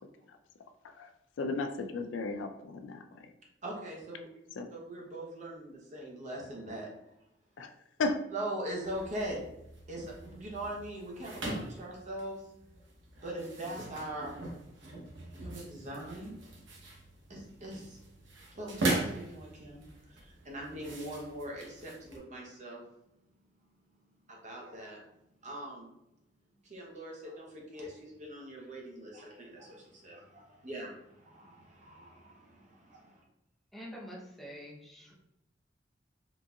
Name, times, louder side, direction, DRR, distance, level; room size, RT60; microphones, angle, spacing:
voice 1, 1.4-3.3 4.6-4.7 7.6-7.7 8.0-8.2, left 3 dB, 85° left, 7 dB, 0.4 m, -34 dB
voice 2, 3.6-4.3 4.7-6.9 8.3-9.5 9.9-12.4 13.2-14.4 15.3-16.4 17.3-18.0 18.5-22.8 24.3-25.0 25.4-25.9 26.6-33.2, right 1 dB, 40° right, -2 dB, 0.9 m, -41 dB
sound 1, 8.8-22.2, right 2 dB, 85° right, 0.9 m, -41 dB
voice 3, 33.7-35.1, equal, ahead, -3 dB, 0.7 m, -46 dB
3.9 x 2.7 x 2.4 m, 0.87 s
head